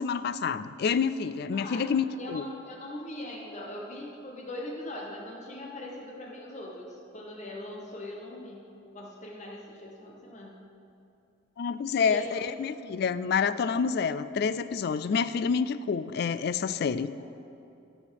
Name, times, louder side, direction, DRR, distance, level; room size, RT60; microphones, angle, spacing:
voice 1, 0.0-2.4 11.6-17.1, left 6 dB, 55° left, 14 dB, 0.3 m, -28 dB
voice 2, 1.5-1.8 2.2-8.6 8.9-10.6 12.0-12.7 17.2-17.3, left 1 dB, 35° left, -1 dB, 1.0 m, -41 dB
13.0 x 4.4 x 6.4 m, 2.6 s
head